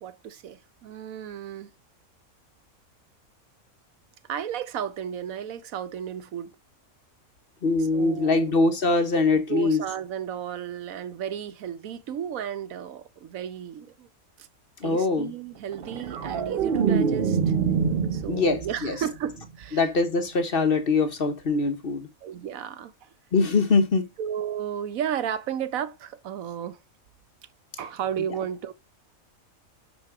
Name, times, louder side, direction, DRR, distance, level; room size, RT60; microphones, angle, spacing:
voice 1, 0.0-1.7 4.3-6.5 7.8-8.6 9.3-14.1 14.4-14.5 14.8-17.5 18.1-19.8 22.2-23.1 24.2-26.8 27.8-28.7, right 9 dB, 75° right, 1.1 m, -33 dB
voice 2, 7.6-9.8 14.8-15.3 18.3-19.0 19.7-22.1 23.3-24.1, left 3 dB, 45° left, 1.0 m, -23 dB
sound 1, 15.7-18.9 19.3-19.6, right 6 dB, 50° right, 0.8 m, -25 dB
6.1 x 5.3 x 5.9 m
omnidirectional pair, 1.5 m